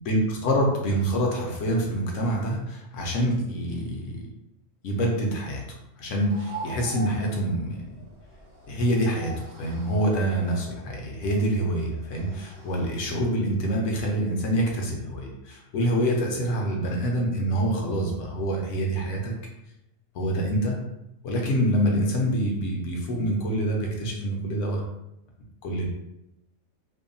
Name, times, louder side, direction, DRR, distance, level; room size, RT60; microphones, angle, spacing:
voice 1, 0.1-4.3 4.8-5.6 6.0-7.8 8.7-19.3 20.1-20.8 21.2-24.8 25.6-25.9, right 1 dB, 70° left, 0 dB, 0.9 m, -26 dB
sound 1, 6.3-13.3, right 3 dB, 55° right, 0.7 m, -44 dB
2.7 x 2.2 x 2.5 m, 0.86 s
omnidirectional pair, 1.4 m